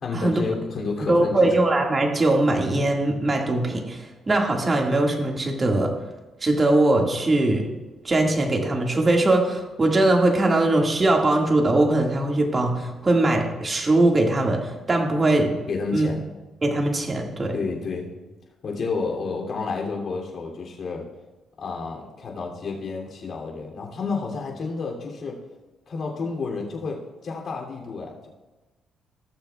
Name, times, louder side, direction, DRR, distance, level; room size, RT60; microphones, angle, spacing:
voice 1, 0.0-1.5 15.7-16.2 17.5-18.1 18.6-21.1 21.6-25.4 25.9-28.3, left 4 dB, 55° left, -1 dB, 2.8 m, -30 dB
voice 2, 1.1-4.0 4.3-5.9 6.4-7.7 8.0-15.6 15.9-16.1 16.6-17.5, right 2 dB, 30° right, 1 dB, 1.9 m, -21 dB
18.0 x 7.0 x 2.4 m, 1.2 s
cardioid pair, 95°, 0 cm